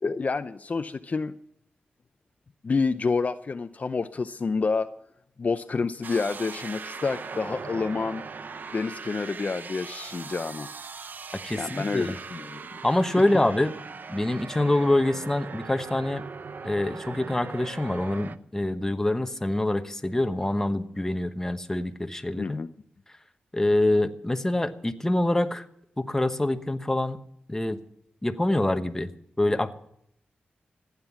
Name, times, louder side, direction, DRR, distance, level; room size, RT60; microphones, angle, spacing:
voice 1, 0.0-1.3 2.6-4.9 5.4-8.2 8.7-10.7 11.5-12.6 22.4-22.7, left 4 dB, 45° left, 10 dB, 0.6 m, -28 dB
sound 1, 6.0-18.4, right 5 dB, 60° right, 0.7 m, -40 dB
voice 2, 11.4-12.2 12.8-13.7 14.1-16.2 16.6-22.6 23.5-25.7 26.0-27.2 27.5-27.8 28.2-29.1 29.4-29.7, left 1 dB, 15° left, 8 dB, 1.1 m, -25 dB
15.0 x 9.9 x 7.3 m, 0.73 s
cardioid pair, 70°, 4 cm